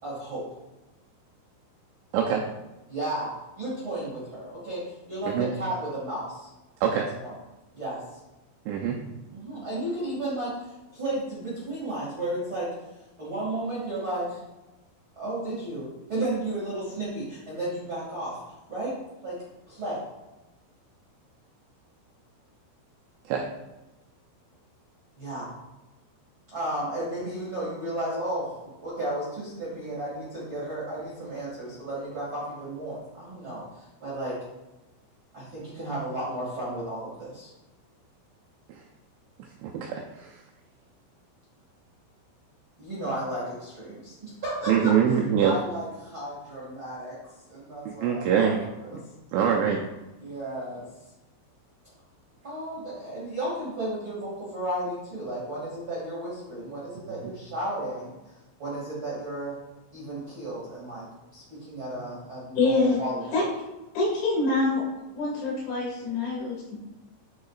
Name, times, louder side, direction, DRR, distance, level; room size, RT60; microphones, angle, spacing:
voice 1, 0.0-0.5 2.9-6.5 6.8-7.3 7.7-8.2 9.3-10.5 10.9-12.7 13.2-14.4 15.1-18.9 19.2-19.4 19.7-20.0 25.2-25.5 26.5-34.4 35.3-37.5 42.8-47.2 47.5-49.0 50.2-50.8 52.4-59.5 59.9-61.0 61.3-63.4, right 1 dB, 45° right, -9 dB, 1.5 m, -33 dB
voice 2, 2.1-2.4 5.3-5.5 6.8-7.1 8.7-9.0 23.3-23.4 39.6-40.3 44.7-45.5 47.9-48.6 49.3-49.8, right 8 dB, 85° right, 0 dB, 2.7 m, -24 dB
voice 3, 62.6-63.0 63.3-63.4 64.0-64.8 65.1-66.9, left 3 dB, 70° left, -3 dB, 4.1 m, -25 dB
9.3 x 6.5 x 2.4 m, 1.0 s
omnidirectional pair, 6.0 m